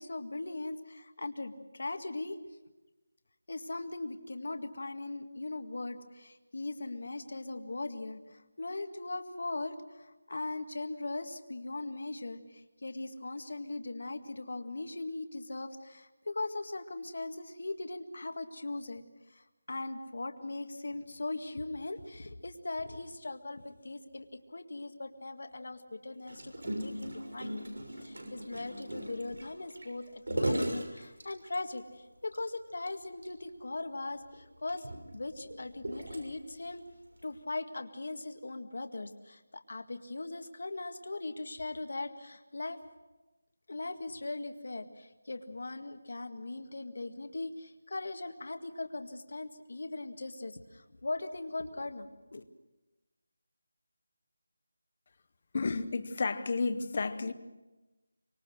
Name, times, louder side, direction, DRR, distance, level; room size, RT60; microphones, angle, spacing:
voice 1, 0.0-2.4 3.5-19.0 19.3-36.9 37.2-42.8 43.7-52.5, left 2 dB, 55° left, 7 dB, 1.9 m, -39 dB
Gurgling, 26.3-31.8 32.3-32.4 32.7-32.9 33.2-33.3 34.1-36.6 37.2-37.4, right 1 dB, 90° right, 6.3 m, -37 dB
voice 2, 55.5-57.3, left 4 dB, 30° left, 13 dB, 0.9 m, -31 dB
25.0 x 23.0 x 6.4 m, 1.1 s
figure-of-eight pair, 180°, 0 cm